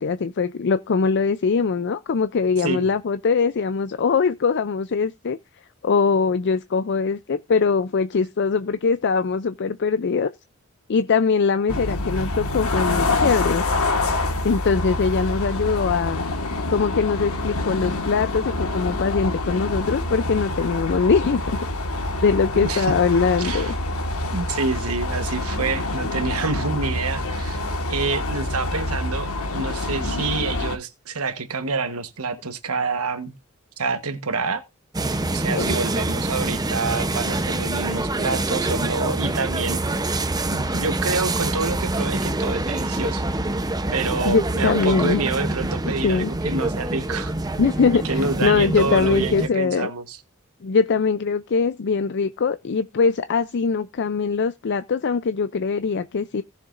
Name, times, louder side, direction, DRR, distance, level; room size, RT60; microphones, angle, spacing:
voice 1, 0.0-5.4 5.8-10.3 10.9-13.6 14.4-16.2 16.7-21.6 22.2-23.7 35.5-35.8 44.3-45.2 46.0-46.3 47.6-49.9 50.6-56.4, left 5 dB, 55° left, 0.4 m, -22 dB
sound 1, 11.7-30.8, left 2 dB, 80° left, 1.7 m, -26 dB
voice 2, 22.5-22.9 23.4-23.7 24.3-27.6 27.9-33.3 33.8-34.6 35.3-40.0 40.5-43.2 43.9-47.3 48.0-50.2, right 4 dB, 80° right, 1.2 m, -27 dB
sound 2, 34.9-49.5, right 2 dB, 20° right, 0.8 m, -26 dB
18.0 x 6.5 x 2.6 m
head